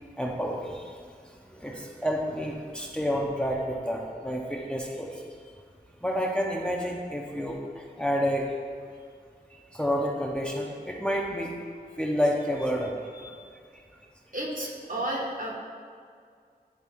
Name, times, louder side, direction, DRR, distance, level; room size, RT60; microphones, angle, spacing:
voice 1, 0.2-1.0 1.6-5.2 6.0-8.5 9.7-11.6 12.0-12.9, equal, 5° left, -1 dB, 0.8 m, -29 dB
voice 2, 13.1-13.5 14.3-15.5, right 1 dB, 55° right, -2 dB, 1.2 m, -33 dB
10.0 x 3.6 x 3.6 m, 2.1 s
wide cardioid pair, 40°, 17 cm